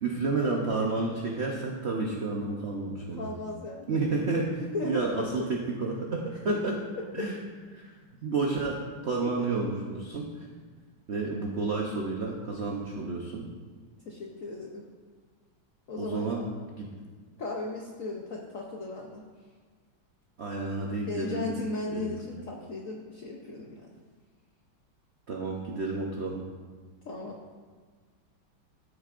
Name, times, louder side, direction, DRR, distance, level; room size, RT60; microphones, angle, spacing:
voice 1, 0.0-3.3 3.9-4.5 4.8-6.7 7.1-7.4 7.7-7.9 8.2-10.5 11.1-13.5 16.0-16.4 16.7-16.9 20.4-21.5 21.9-22.2 25.3-26.5, right 3 dB, 70° right, -1 dB, 0.6 m, -30 dB
voice 2, 3.1-4.3 4.6-5.5 6.5-6.6 7.2-7.3 7.8-8.0 9.2-9.6 12.4-12.6 14.1-14.8 15.9-16.5 17.4-19.3 21.1-23.9 27.0-27.4, left 3 dB, 65° left, -1 dB, 0.8 m, -36 dB
13.0 x 6.6 x 2.5 m, 1.5 s
omnidirectional pair, 2.3 m